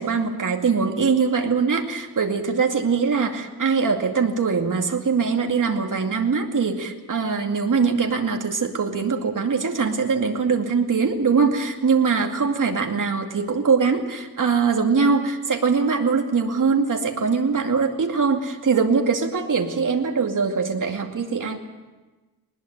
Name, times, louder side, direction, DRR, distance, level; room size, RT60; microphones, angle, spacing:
voice 1, 0.0-21.6, right 5 dB, 50° right, 3 dB, 2.3 m, -22 dB
21.0 x 20.0 x 8.1 m, 1.2 s
wide cardioid pair, 155°, 39 cm